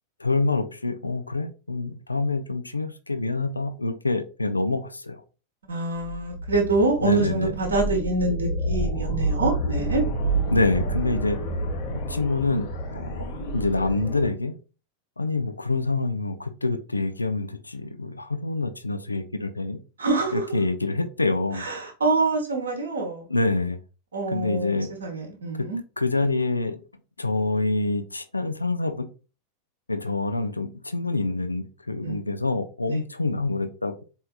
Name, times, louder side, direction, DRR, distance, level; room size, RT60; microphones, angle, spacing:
voice 1, 0.2-5.2 7.0-7.5 10.5-11.4 11.9-13.3 13.5-14.6 15.2-19.8 20.3-21.6 23.3-23.8 24.3-24.9 26.0-26.8 27.2-29.1 29.9-34.0, left 3 dB, 80° left, 9 dB, 0.4 m, -26 dB
voice 2, 5.7-10.0 20.0-20.5 21.5-23.2 24.1-25.8 32.0-32.2 32.9-33.0, right 3 dB, 70° right, 0 dB, 1.1 m, -26 dB
sound 1, 6.0-14.3, right 1 dB, 50° left, 1.0 m, -29 dB
4.4 x 2.8 x 2.4 m, 0.34 s
figure-of-eight pair, 90°, 0 cm